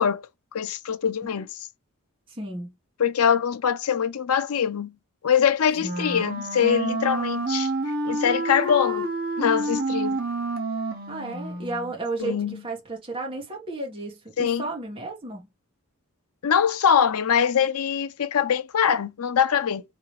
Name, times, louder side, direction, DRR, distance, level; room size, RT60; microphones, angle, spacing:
voice 1, 0.0-1.6 3.0-4.9 5.2-9.1 9.4-10.2 12.2-12.6 14.4-14.6 16.4-19.8, left 8 dB, 85° left, 0.6 m, -23 dB
voice 2, 2.3-2.7 5.8-6.0 11.1-15.5, right 2 dB, 25° right, 1.3 m, -33 dB
Wind instrument woodwind instrument, 5.8-12.0, right 2 dB, 45° right, 1.0 m, -28 dB
3.9 x 3.4 x 3.1 m
head